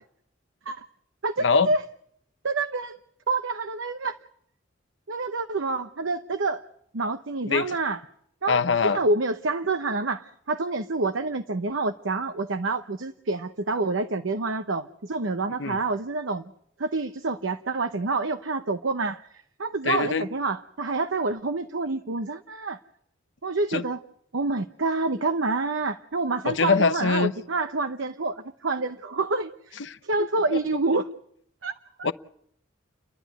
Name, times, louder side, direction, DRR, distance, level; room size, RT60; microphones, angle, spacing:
voice 1, 1.2-1.8 2.4-2.9 3.3-4.2 5.1-6.6 6.9-8.0 8.4-16.5 16.8-19.2 19.6-22.8 23.4-24.0 24.3-29.7 30.0-31.1 31.6-31.7, right 3 dB, 80° right, 0.9 m, -27 dB
voice 2, 7.5-7.8 8.5-9.0 15.6-15.8 19.8-20.3 23.7-23.8 26.4-27.3 29.8-30.0 30.5-30.6 32.0-32.1, left 5 dB, 65° left, 0.8 m, -23 dB
30.0 x 11.5 x 9.4 m
head